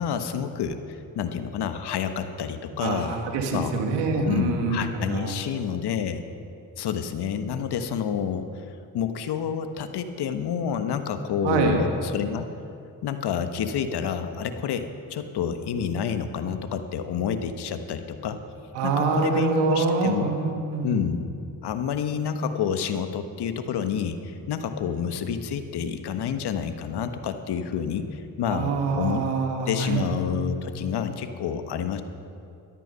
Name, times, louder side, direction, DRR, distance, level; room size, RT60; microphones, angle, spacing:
voice 1, 0.0-3.2 3.5-3.7 4.3-6.2 6.8-8.5 8.9-12.5 13.0-18.4 18.8-20.3 20.8-21.3 21.6-29.2 29.7-32.0, left 7 dB, 65° left, 9 dB, 1.2 m, -29 dB
voice 2, 2.8-5.3 11.4-11.8 18.7-21.0 28.5-30.1, right 4 dB, 80° right, 2 dB, 1.9 m, -25 dB
13.5 x 13.0 x 5.6 m, 2.6 s
supercardioid pair, 50°, 42 cm